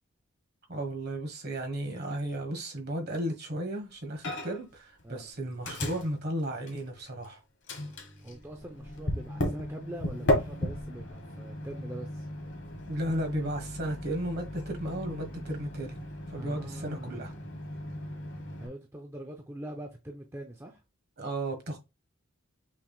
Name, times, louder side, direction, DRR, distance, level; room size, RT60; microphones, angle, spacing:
voice 1, 0.7-7.4 12.9-16.0 16.3-17.3 21.2-21.8, right 1 dB, 45° right, 1.3 m, -34 dB
Microwave oven, 4.2-4.7 5.0-7.3 7.7-18.7, left 1 dB, 55° left, 1.3 m, -35 dB
voice 2, 8.2-12.3 16.4-17.5 18.6-20.8, right 1 dB, 10° right, 0.5 m, -43 dB
5.8 x 3.4 x 2.3 m
head